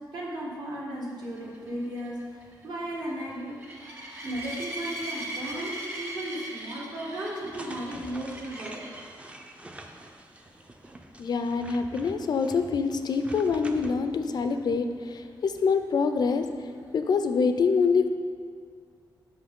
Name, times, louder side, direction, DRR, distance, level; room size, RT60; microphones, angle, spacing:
voice 1, 0.1-2.2 2.6-3.6 4.2-8.9, right 1 dB, 65° right, -3 dB, 1.4 m, -35 dB
sound 1, 1.2-9.2 9.8-10.1 10.4-10.5 10.8-10.9 14.5-14.6, right 1 dB, 30° right, 1.2 m, -39 dB
sound 2, 7.5-13.9, right 1 dB, 15° right, 0.4 m, -46 dB
voice 2, 11.2-18.1, left 5 dB, 60° left, 8 dB, 0.4 m, -25 dB
6.0 x 5.3 x 3.6 m, 2.1 s
wide cardioid pair, 125°, 8 cm